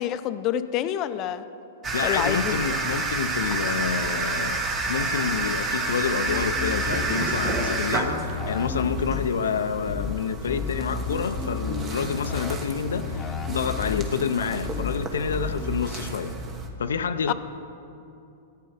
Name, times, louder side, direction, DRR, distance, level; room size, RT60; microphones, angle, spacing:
voice 1, 0.0-1.4 2.0-2.6 17.3-17.4, left 11 dB, 40° left, 12 dB, 0.6 m, -27 dB
sound 1, 1.8-16.7, right 3 dB, 25° right, 1.4 m, -30 dB
voice 2, 1.9-16.4 16.8-17.3, left 6 dB, 90° left, 10 dB, 0.5 m, -28 dB
sound 2, 6.3-7.8 8.1-9.3 9.9-10.1 10.5-12.6 12.9-14.1 14.7-14.9 15.3-15.8, left 6 dB, 20° left, 1.0 m, -32 dB
13.5 x 9.3 x 5.0 m, 2.7 s
hypercardioid pair, 125°, 0 cm